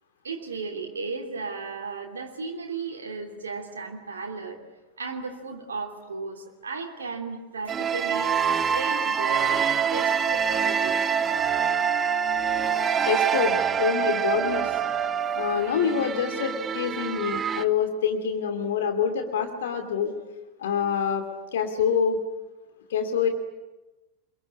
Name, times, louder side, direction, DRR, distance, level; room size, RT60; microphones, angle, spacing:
voice 1, 0.2-4.6 5.0-8.3 8.7-11.1 21.4-21.5, right 4 dB, 70° right, 1 dB, 2.9 m, -35 dB
sound 1, 7.7-17.6, right 7 dB, 25° right, 1.0 m, -25 dB
voice 2, 13.1-14.7 15.3-20.1 20.6-21.2 21.5-22.2 22.9-23.3, left 7 dB, 60° left, 6 dB, 2.7 m, -26 dB
28.5 x 22.5 x 8.6 m, 1.1 s
figure-of-eight pair, 90°, 0 cm